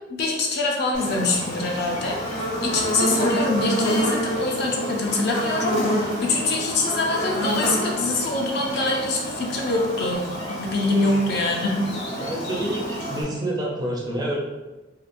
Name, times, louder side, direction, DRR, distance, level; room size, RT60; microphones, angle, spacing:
voice 1, 0.1-10.2 10.5-11.8, left 2 dB, 55° left, 0 dB, 0.5 m, -24 dB
Buzz, 0.9-13.2, equal, 75° left, 1.4 m, -28 dB
voice 2, 12.2-14.4, right 1 dB, 20° right, -3 dB, 0.4 m, -28 dB
2.9 x 2.3 x 2.5 m, 1.1 s
head